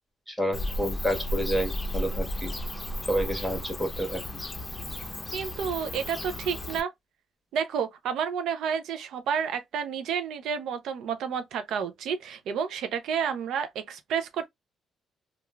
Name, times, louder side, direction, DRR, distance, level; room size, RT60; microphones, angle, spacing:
voice 1, 0.3-2.5 3.1-4.2, equal, 5° right, 1.2 m, -29 dB
Bird / Cricket, 0.5-6.8, left 1 dB, 20° left, 0.6 m, -34 dB
voice 2, 5.3-6.9 7.5-14.5, right 7 dB, 80° right, 0.4 m, -30 dB
3.0 x 2.3 x 2.2 m
cardioid pair, 90°, 0 cm